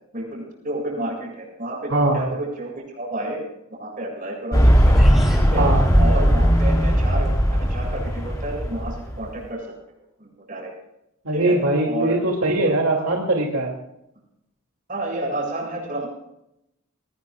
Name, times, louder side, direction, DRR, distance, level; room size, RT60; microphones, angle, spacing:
voice 1, 0.1-3.4 3.7-5.0 5.5-5.6 6.0-7.3 7.6-9.7 10.2-10.7 11.3-11.5 11.8-12.2 13.0-13.1 14.9-16.1, right 1 dB, 40° right, 0 dB, 7.9 m, -30 dB
voice 2, 1.9-2.2 5.5-5.9 11.2-13.7, right 2 dB, 80° right, 0 dB, 2.9 m, -21 dB
sound 1, 4.5-9.3, equal, 15° left, 3.9 m, -18 dB
sound 2, 4.9-5.5, equal, ahead, 5.6 m, -38 dB
21.0 x 20.5 x 2.5 m, 0.82 s
head